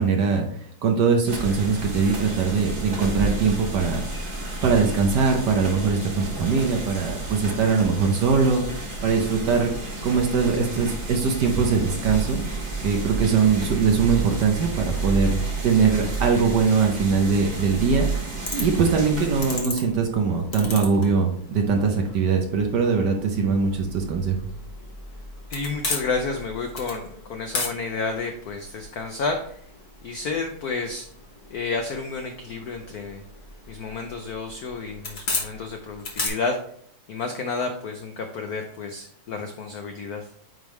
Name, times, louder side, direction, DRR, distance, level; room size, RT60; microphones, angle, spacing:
voice 1, 0.0-4.2 4.6-9.7 10.0-12.4 12.8-15.4 15.6-24.4, right 5 dB, 65° right, 2 dB, 1.2 m, -22 dB
sound 1, 1.3-19.6, right 3 dB, 30° right, 1.4 m, -31 dB
sound 2, 18.4-36.3, left 3 dB, 35° left, 1.2 m, -37 dB
voice 2, 25.5-29.6 30.0-31.1 31.5-33.2 33.7-36.6 37.1-40.3, left 4 dB, 80° left, 5 dB, 0.8 m, -30 dB
9.2 x 3.5 x 3.1 m, 0.64 s
omnidirectional pair, 2.4 m